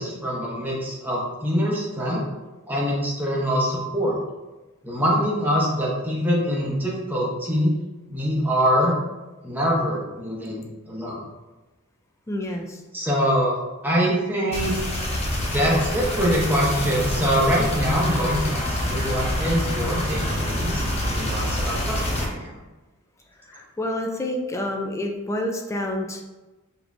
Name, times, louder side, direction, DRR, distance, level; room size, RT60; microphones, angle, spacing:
voice 1, 0.0-2.2 2.7-4.2 4.8-7.7 8.1-9.0 9.4-11.2 12.9-13.6 13.8-14.7 15.5-22.6, equal, 10° right, -5 dB, 0.8 m, -24 dB
voice 2, 12.3-12.8 23.4-26.2, left 1 dB, 15° left, 2 dB, 0.3 m, -28 dB
sound 1, 14.5-22.3, left 1 dB, 30° left, 0.7 m, -26 dB
5.1 x 3.0 x 2.5 m, 1.1 s
head